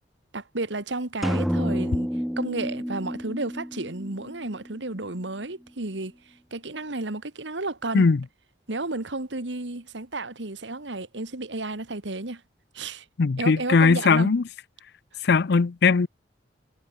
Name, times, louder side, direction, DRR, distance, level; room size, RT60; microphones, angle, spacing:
voice 1, 0.3-2.1 2.4-6.1 6.5-8.1 8.7-12.4 12.7-13.1 13.4-14.3, right 2 dB, 70° right, 1.9 m, -32 dB
sound 1, 1.2-5.0, equal, ahead, 0.5 m, -29 dB
voice 2, 13.2-14.4 15.2-16.1, left 4 dB, 60° left, 0.5 m, -19 dB
head